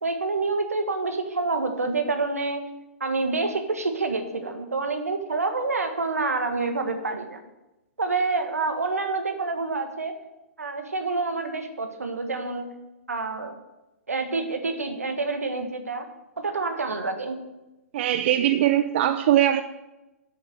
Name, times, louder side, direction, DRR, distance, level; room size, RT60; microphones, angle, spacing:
voice 1, 0.0-2.6 3.0-7.4 8.0-10.1 10.6-12.7 13.1-13.5 14.1-16.1 16.4-17.4, right 3 dB, 85° right, 6 dB, 1.5 m, -27 dB
voice 2, 17.9-19.6, right 12 dB, 50° right, 10 dB, 0.5 m, -21 dB
7.3 x 6.8 x 7.7 m, 0.98 s
figure-of-eight pair, 115°, 8 cm